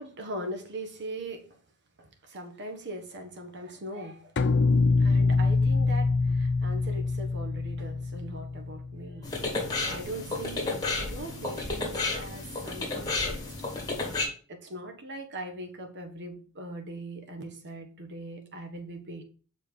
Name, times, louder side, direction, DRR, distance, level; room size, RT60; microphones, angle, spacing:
voice 1, 0.0-1.6 2.0-4.5 5.0-13.5 14.5-19.2, right 1 dB, 50° right, 1.3 m, -40 dB
sound 1, 4.4-9.6, left 3 dB, 50° left, 0.6 m, -25 dB
sound 2, 9.2-14.3, left 3 dB, 15° left, 1.9 m, -32 dB
6.6 x 5.0 x 3.9 m
head